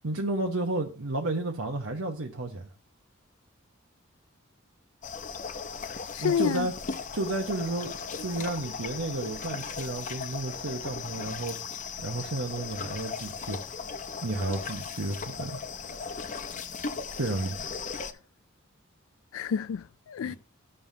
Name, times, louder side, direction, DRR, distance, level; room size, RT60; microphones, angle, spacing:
voice 1, 0.0-2.7 6.2-6.7 7.1-7.9 8.2-11.6 12.0-13.6 14.2-15.6 17.2-17.7 20.2-20.4, right 2 dB, 85° right, 1.1 m, -32 dB
sound 1, 5.0-18.1, left 5 dB, 40° left, 0.7 m, -37 dB
voice 2, 5.9-6.7 19.3-20.4, left 7 dB, 80° left, 0.3 m, -29 dB
15.0 x 5.5 x 2.8 m
head